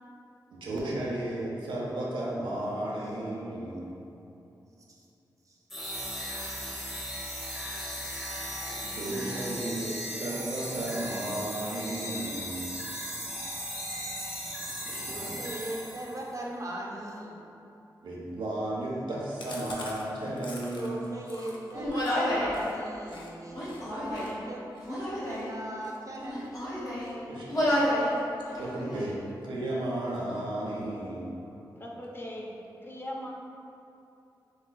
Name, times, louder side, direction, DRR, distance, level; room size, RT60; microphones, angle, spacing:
voice 1, 0.5-3.9 8.8-12.7 14.9-15.3 18.0-21.2 27.3-27.8 28.5-29.2 29.4-31.4, right 1 dB, 90° right, -5 dB, 0.6 m, -34 dB
sound 1, 5.7-16.2, equal, ahead, 0.9 m, -37 dB
voice 2, 15.1-17.4 20.7-24.6 24.9-26.6, right 1 dB, 40° right, -3 dB, 0.7 m, -39 dB
Chewing mastication, 19.4-23.3 23.6-23.8 24.1-27.1 27.5-27.8 28.1-29.0 29.3-29.4 29.7-29.8 30.1-30.7, left 2 dB, 75° left, 0.5 m, -47 dB
Human voice, 21.7-22.6 23.5-24.4 24.8-25.5 26.2-27.1 27.5-28.1 28.4-29.1, equal, 50° left, 1.2 m, -30 dB
voice 3, 31.8-33.3, left 1 dB, 30° left, -2 dB, 0.6 m, -40 dB
6.3 x 2.3 x 2.2 m, 2.8 s
cardioid pair, 45°, 8 cm